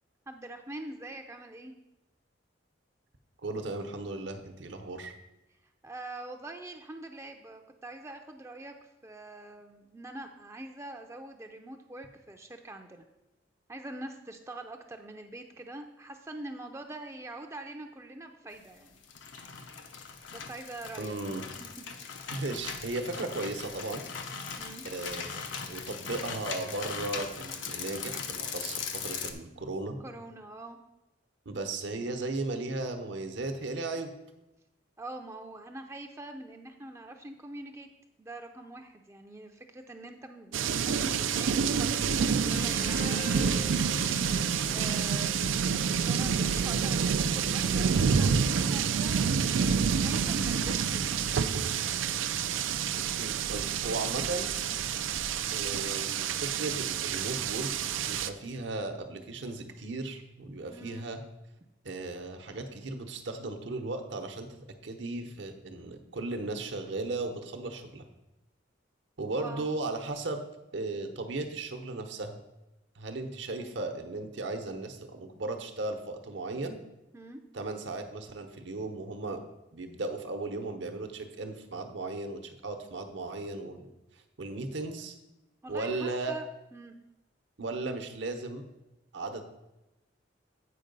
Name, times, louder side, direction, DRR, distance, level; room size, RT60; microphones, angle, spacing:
voice 1, 0.3-1.7 5.8-13.0 13.7-19.0 20.3-21.2 21.6-21.8 24.6-24.8 30.0-30.8 35.0-37.9 38.2-43.8 44.6-49.2 50.0-51.1 60.7-61.1 69.4-69.7 73.6-73.8 77.1-77.4 85.6-86.5 86.7-86.9, right 2 dB, 15° right, 4 dB, 0.5 m, -44 dB
voice 2, 3.4-5.1 21.0-21.4 22.3-24.0 24.8-30.0 31.5-34.1 52.9-54.5 55.5-57.7 58.0-61.2 61.8-68.0 69.2-70.4 70.7-72.4 73.0-76.8 77.5-79.4 79.7-83.9 84.4-85.1 85.7-86.3 87.6-88.7 89.1-89.5, right 2 dB, 70° right, 6 dB, 0.9 m, -36 dB
sound 1, 18.9-29.3, left 6 dB, 75° left, 0.7 m, -39 dB
sound 2, 40.5-58.3, right 6 dB, 90° right, 0.4 m, -28 dB
sound 3, 42.5-49.8, left 4 dB, 45° left, 0.7 m, -48 dB
8.6 x 4.7 x 5.3 m, 0.95 s
head